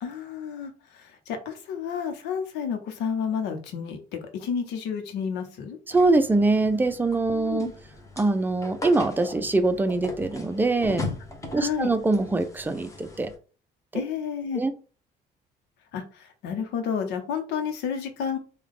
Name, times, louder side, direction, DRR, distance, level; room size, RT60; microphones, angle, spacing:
voice 1, 0.0-4.0 4.3-5.8 7.3-7.7 11.5-11.9 13.9-14.6 15.9-18.4, left 7 dB, 85° left, 6 dB, 0.9 m, -31 dB
sound 1, 5.9-13.4, left 2 dB, 20° left, 0.9 m, -39 dB
voice 2, 5.9-7.7 8.2-11.1 11.5-13.3 13.9-14.0 14.6-14.7, right 2 dB, 10° right, 9 dB, 0.4 m, -23 dB
3.4 x 2.3 x 3.7 m, 0.37 s
cardioid pair, 110°, 17 cm